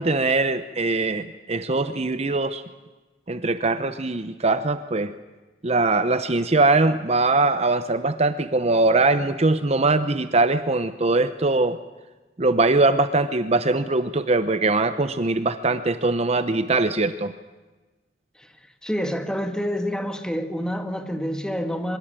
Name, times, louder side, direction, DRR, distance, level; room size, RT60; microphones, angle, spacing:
voice 1, 0.0-2.6 3.3-5.1 5.6-11.8 12.4-17.3, right 2 dB, 35° right, 11 dB, 0.8 m, -21 dB
voice 2, 18.8-22.0, equal, 5° left, 6 dB, 1.9 m, -27 dB
24.0 x 21.5 x 9.0 m, 1.2 s
head